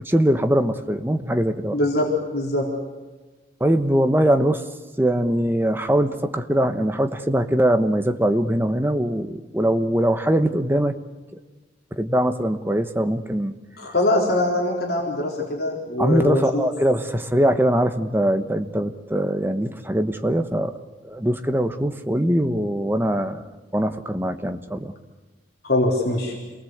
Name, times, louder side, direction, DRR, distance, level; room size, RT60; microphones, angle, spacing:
voice 1, 0.0-1.8 3.6-4.6 5.0-10.9 11.9-13.5 16.0-20.7 21.0-23.4 23.7-24.9, right 1 dB, 10° right, 7 dB, 1.1 m, -22 dB
voice 2, 1.7-2.7 13.8-16.7 25.6-26.4, left 2 dB, 55° left, -2 dB, 4.2 m, -22 dB
28.0 x 20.0 x 8.1 m, 1.2 s
head